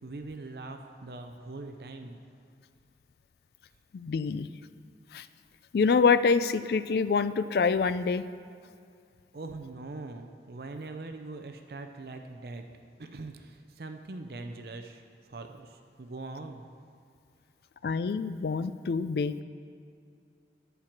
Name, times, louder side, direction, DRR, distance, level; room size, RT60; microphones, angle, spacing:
voice 1, 0.0-2.2 9.3-12.6 13.0-16.7, right 2 dB, 60° right, 6 dB, 0.5 m, -42 dB
voice 2, 3.9-4.5 5.1-5.3 5.7-8.2 17.8-19.4, left 5 dB, 60° left, 14 dB, 0.3 m, -26 dB
13.5 x 4.6 x 5.9 m, 2.3 s
head